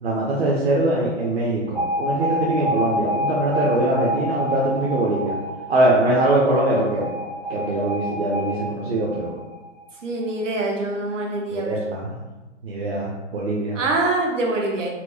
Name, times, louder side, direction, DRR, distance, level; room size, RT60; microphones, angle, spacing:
voice 1, 0.0-5.3 5.7-7.1 7.5-9.3 11.5-12.2 12.6-13.8, right 1 dB, 55° right, -4 dB, 0.7 m, -22 dB
Alarm, 1.7-9.8, equal, 5° left, 0.4 m, -28 dB
voice 2, 10.0-11.8 13.7-14.9, right 2 dB, 80° right, 0 dB, 0.9 m, -24 dB
4.4 x 2.1 x 2.7 m, 1.1 s
hypercardioid pair, 160°, 37 cm